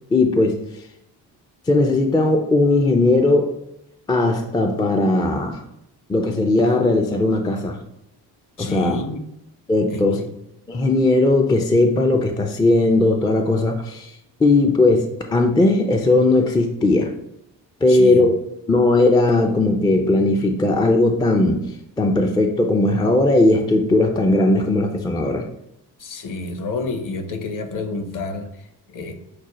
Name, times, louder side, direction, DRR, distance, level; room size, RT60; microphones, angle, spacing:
voice 1, 0.1-0.6 1.7-3.5 4.1-5.6 6.1-7.8 8.6-9.0 9.7-10.2 10.7-14.1 14.4-17.1 17.8-18.3 18.7-21.6 22.0-25.4, left 2 dB, 10° left, 3 dB, 0.3 m, -18 dB
voice 2, 8.6-9.2 9.9-10.3 17.9-18.3 26.0-29.1, left 3 dB, 40° left, 6 dB, 0.8 m, -29 dB
6.1 x 2.1 x 3.0 m, 0.81 s
hypercardioid pair, 50°, 50 cm